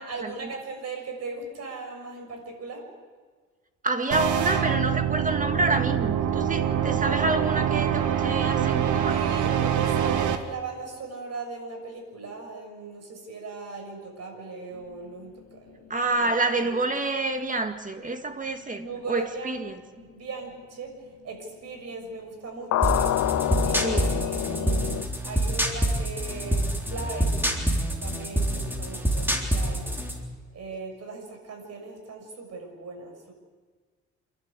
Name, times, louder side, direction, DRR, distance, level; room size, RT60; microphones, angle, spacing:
voice 1, 0.0-2.9 9.1-16.2 16.5-16.7 18.7-19.7 19.9-20.9 21.2-23.2 23.6-27.5 28.0-29.9 30.5-33.3, right 3 dB, 55° right, 6.5 m, -38 dB
voice 2, 3.8-9.2 15.9-18.8 19.1-19.8 23.8-24.1, right 2 dB, 25° right, 2.0 m, -28 dB
sound 1, 4.1-10.4, right 9 dB, 75° right, 1.7 m, -25 dB
sound 2, 22.7-25.0, left 13 dB, 60° left, 0.6 m, -26 dB
sound 3, 22.8-30.2, right 1 dB, 5° right, 3.7 m, -26 dB
28.5 x 11.5 x 8.5 m
cardioid pair, 90°, 30 cm